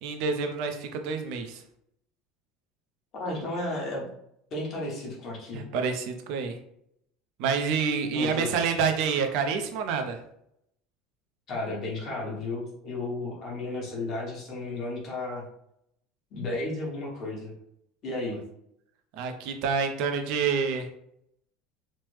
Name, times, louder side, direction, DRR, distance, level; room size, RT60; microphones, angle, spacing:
voice 1, 0.0-1.6 5.5-6.6 7.4-10.2 19.1-20.9, right 5 dB, 60° right, 6 dB, 0.5 m, -28 dB
voice 2, 3.1-4.1 4.5-5.6 8.1-8.5 11.5-15.4 16.3-17.5 18.0-18.4, left 2 dB, 35° left, -3 dB, 1.1 m, -33 dB
3.1 x 2.1 x 3.2 m, 0.73 s
cardioid pair, 160°, 0 cm